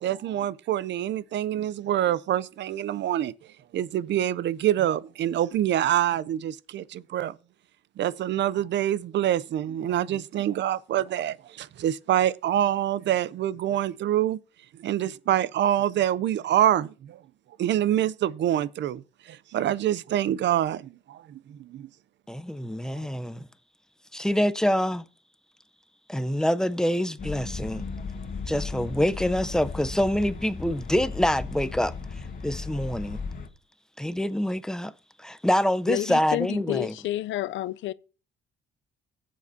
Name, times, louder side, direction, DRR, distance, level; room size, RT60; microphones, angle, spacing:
voice 1, 0.0-3.3 3.7-7.4 8.0-14.4 14.8-17.2 17.6-19.0 19.3-21.9 23.0-23.1, right 11 dB, 65° right, 0.5 m, -26 dB
voice 2, 22.3-23.5 24.1-25.0 26.1-27.9 28.5-31.9 32.4-33.2 34.0-34.9 35.2-36.9, equal, 5° left, 0.6 m, -26 dB
sound 1, 27.2-33.5, left 4 dB, 45° left, 1.3 m, -36 dB
voice 3, 35.9-37.9, left 15 dB, 75° left, 0.4 m, -29 dB
17.5 x 7.5 x 2.7 m
cardioid pair, 90°, 20 cm